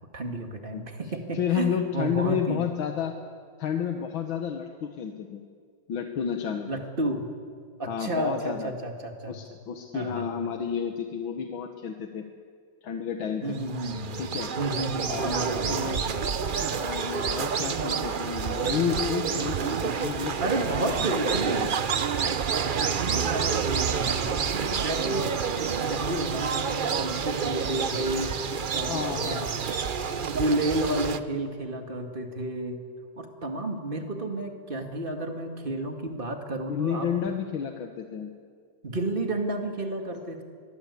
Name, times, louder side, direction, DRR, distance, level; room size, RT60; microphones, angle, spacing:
voice 1, 0.1-2.7 6.7-7.3 7.8-9.4 9.9-10.3 13.4-14.2 14.6-16.3 20.4-21.7 22.8-25.4 25.9-29.9 30.1-32.8 33.2-37.1 38.8-40.4, right 1 dB, 25° right, 4 dB, 2.3 m, -31 dB
voice 2, 1.3-3.1 3.6-5.4 5.9-6.7 7.9-8.7 9.3-12.2 12.8-13.6 14.1-14.5 15.1-16.1 16.7-20.9 21.2-21.7 28.9-29.5 36.7-38.3, left 8 dB, 85° left, 5 dB, 2.1 m, -31 dB
sound 1, 13.5-31.2, right 6 dB, 85° right, 0.4 m, -28 dB
23.0 x 22.0 x 8.4 m, 2.1 s
omnidirectional pair, 2.1 m